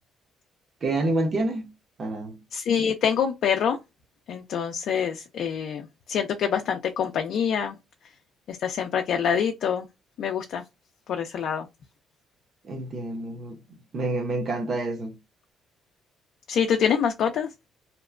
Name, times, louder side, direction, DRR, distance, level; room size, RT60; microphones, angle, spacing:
voice 1, 0.8-1.7 2.0-2.4 12.6-15.2, right 2 dB, 40° right, 0.8 m, -28 dB
voice 2, 2.5-3.8 4.3-7.8 8.5-9.9 10.2-10.6 11.1-11.7 16.5-17.5, left 7 dB, 60° left, 0.4 m, -25 dB
2.8 x 2.1 x 2.4 m
cardioid pair, 125°, 0 cm